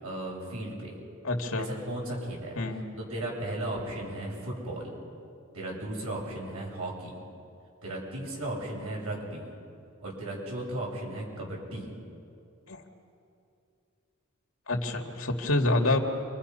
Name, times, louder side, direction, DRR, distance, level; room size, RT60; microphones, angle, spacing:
voice 1, 0.0-1.0 1.6-2.6 3.0-4.9 5.5-7.2 7.8-9.5 10.0-11.9, right 1 dB, 90° right, -3 dB, 7.7 m, -35 dB
voice 2, 1.2-1.7 2.6-2.9 12.7-12.8 14.7-16.0, left 2 dB, 70° left, 3 dB, 2.5 m, -27 dB
29.5 x 25.0 x 5.7 m, 2.5 s
head